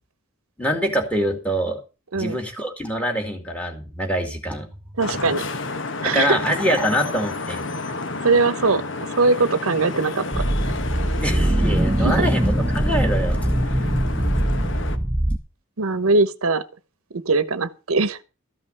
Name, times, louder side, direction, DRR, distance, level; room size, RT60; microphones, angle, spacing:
voice 1, 0.6-1.8 2.1-4.7 6.0-7.6 11.1-13.9, equal, 5° left, 2.6 m, -25 dB
Vehicle horn car horn honking / Traffic noise roadway noise, 5.0-15.0, left 3 dB, 60° left, 1.2 m, -31 dB
voice 2, 5.0-5.4 6.0-6.4 8.2-8.8 9.1-10.2 12.0-12.3 15.8-16.6 17.1-18.2, right 3 dB, 85° right, 1.0 m, -20 dB
sound 1, 10.3-15.4, right 1 dB, 10° right, 0.7 m, -21 dB
14.0 x 5.5 x 8.0 m
head